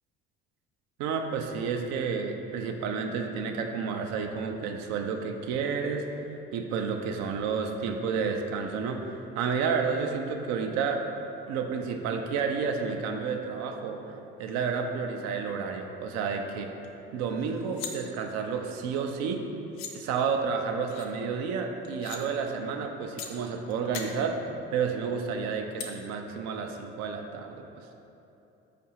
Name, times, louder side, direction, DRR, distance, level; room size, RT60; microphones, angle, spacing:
voice 1, 1.0-6.1 6.5-11.0 11.5-16.7 17.1-19.5 19.9-24.4 24.7-27.9, right 5 dB, 65° right, 4 dB, 0.4 m, -31 dB
sound 1, 16.8-16.9 17.3-17.9 19.3-19.4 19.7-19.9 20.9-21.1 21.8-22.2 23.2-23.3 23.7-24.1 25.8-25.9, left 7 dB, 70° left, 0.5 m, -39 dB
4.8 x 2.5 x 2.8 m, 2.8 s
hypercardioid pair, 65°, 29 cm